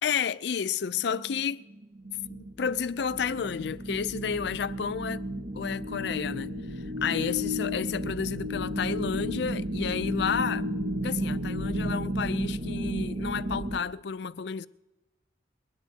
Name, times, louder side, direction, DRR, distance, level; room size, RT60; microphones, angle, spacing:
voice 1, 0.0-1.6 2.3-5.2 5.5-10.7 11.0-14.7, left 6 dB, 60° left, 0.4 m, -31 dB
sound 1, 1.0-13.8, equal, 45° right, 1.1 m, -33 dB
22.0 x 19.5 x 2.8 m
head